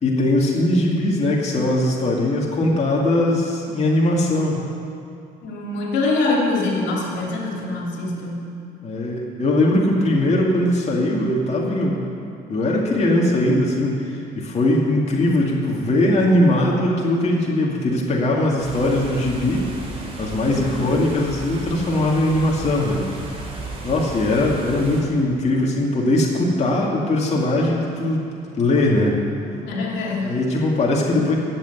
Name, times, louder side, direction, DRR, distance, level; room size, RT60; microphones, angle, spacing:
voice 1, 0.0-4.6 8.8-12.0 12.5-19.7 20.2-23.0 23.8-28.3 28.6-29.2 30.2-31.3, left 1 dB, 35° left, -2 dB, 2.3 m, -20 dB
voice 2, 5.4-8.5 20.5-20.9 29.6-30.3, left 3 dB, 75° left, -2 dB, 2.8 m, -24 dB
sound 1, 18.6-25.0, right 2 dB, 30° right, 3.6 m, -34 dB
12.5 x 8.0 x 9.5 m, 2.5 s
cardioid pair, 100°, 18 cm